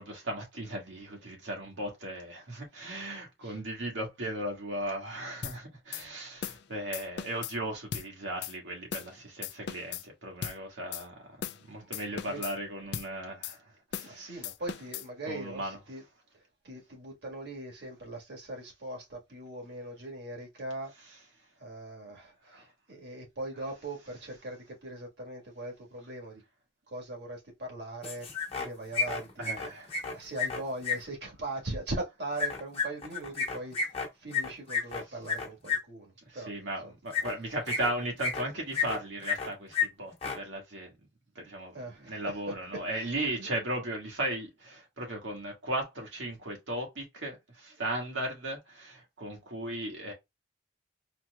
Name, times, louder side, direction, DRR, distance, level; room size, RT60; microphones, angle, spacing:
voice 1, 0.0-11.4 11.6-14.4 15.3-15.8 22.5-22.6 29.4-30.2 36.3-40.9 41.3-50.1, right 1 dB, 80° right, 1.6 m, -37 dB
sound 1, 5.4-5.6 5.9-6.0 6.4-6.6 6.9-7.5 7.9-8.1 8.4-8.5 8.9-9.1 9.4-10.0 10.4-10.6 10.9-11.0 11.4-11.6 11.9-12.5 12.9-13.1 13.4-13.6 13.9-14.1 14.4-15.1, left 8 dB, 60° left, 0.4 m, -38 dB
voice 2, 11.8-12.5 14.0-16.0 16.6-20.9 21.6-26.4 26.9-28.3 28.6-29.5 30.1-36.5 36.8-36.9 41.7-42.2 42.7-43.1 43.4-43.5, right 2 dB, 60° right, 1.5 m, -40 dB
sound 2, 28.0-28.7 28.9-31.0 32.4-35.8 37.1-37.3 37.7-38.4 38.7-39.5 39.7-39.9 40.1-40.4, left 5 dB, 30° left, 1.0 m, -31 dB
4.2 x 2.9 x 2.3 m
head